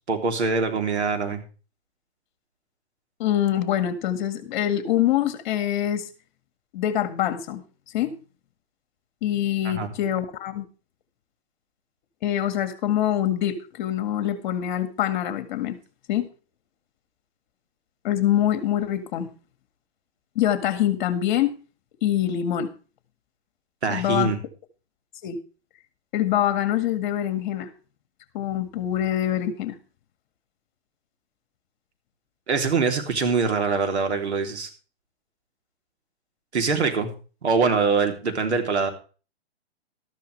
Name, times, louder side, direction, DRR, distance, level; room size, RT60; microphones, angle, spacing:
voice 1, 0.1-1.4 9.6-9.9 23.8-24.4 32.5-34.7 36.5-37.1 37.4-38.9, right 4 dB, 90° right, 5 dB, 3.3 m, -23 dB
voice 2, 3.2-6.0 6.7-7.6 7.9-8.1 9.2-10.6 12.2-15.8 16.1-16.3 18.0-19.3 20.4-21.5 22.0-22.7 23.9-24.3 25.2-25.4 26.1-27.7 28.3-29.8, left 11 dB, 45° left, 10 dB, 2.0 m, -24 dB
13.5 x 12.0 x 3.3 m, 0.36 s
hypercardioid pair, 145°, 33 cm